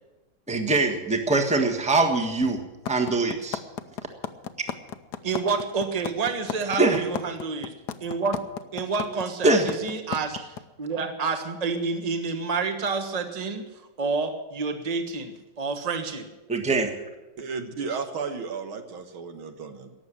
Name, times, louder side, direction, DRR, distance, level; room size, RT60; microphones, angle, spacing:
voice 1, 0.5-2.6 2.9-3.6 6.8-7.0 9.4-9.7 16.5-16.9, right 3 dB, 5° right, 5 dB, 1.2 m, -22 dB
sound 1, 2.9-10.6, left 8 dB, 65° left, 1.2 m, -32 dB
voice 2, 5.2-7.7 8.0-8.4 8.7-13.7 14.0-16.3, right 4 dB, 20° right, 6 dB, 1.2 m, -29 dB
voice 3, 17.4-19.9, right 5 dB, 85° right, 7 dB, 2.2 m, -34 dB
18.0 x 7.3 x 10.0 m, 1.1 s
omnidirectional pair, 2.2 m